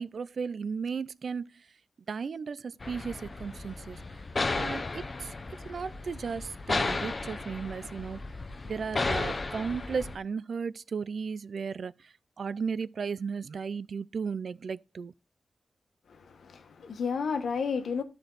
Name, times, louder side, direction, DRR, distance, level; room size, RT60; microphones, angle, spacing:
voice 1, 0.0-1.5 2.1-4.0 4.5-5.3 5.7-8.2 8.6-11.9 12.4-15.1, right 5 dB, 60° right, 0.3 m, -35 dB
sound 1, 2.8-10.2, left 3 dB, 30° left, 0.6 m, -34 dB
voice 2, 16.1-18.0, left 5 dB, 90° left, 1.2 m, -32 dB
13.0 x 4.4 x 3.9 m
wide cardioid pair, 155°, 0 cm